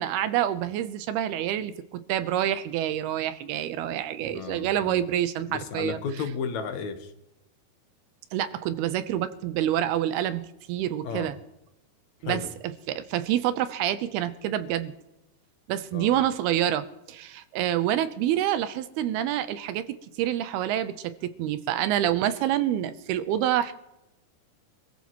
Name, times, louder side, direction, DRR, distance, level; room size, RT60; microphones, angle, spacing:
voice 1, 0.0-6.0 8.3-10.4 10.7-11.4 12.2-12.4 12.9-14.9 15.7-19.9 20.2-23.7, right 11 dB, 85° right, 12 dB, 2.7 m, -27 dB
voice 2, 4.2-5.0 5.5-7.1 11.0-11.3 12.2-12.5 15.9-16.2, left 5 dB, 65° left, 6 dB, 2.0 m, -34 dB
25.5 x 14.5 x 3.0 m, 0.88 s
omnidirectional pair, 4.5 m